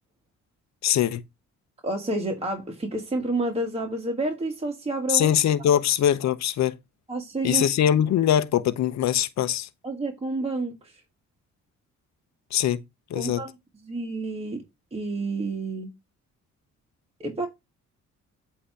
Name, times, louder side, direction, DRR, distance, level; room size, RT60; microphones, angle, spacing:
voice 1, 0.8-1.2 5.1-6.8 7.4-9.7 12.5-12.8 13.1-13.4, left 10 dB, 65° left, 0.8 m, -22 dB
voice 2, 1.8-5.3 7.1-7.7 9.8-11.0 13.1-13.5 13.8-14.6 14.9-15.9 17.2-17.5, right 2 dB, 20° right, 1.5 m, -29 dB
8.3 x 2.9 x 5.7 m
cardioid pair, 90°, 30 cm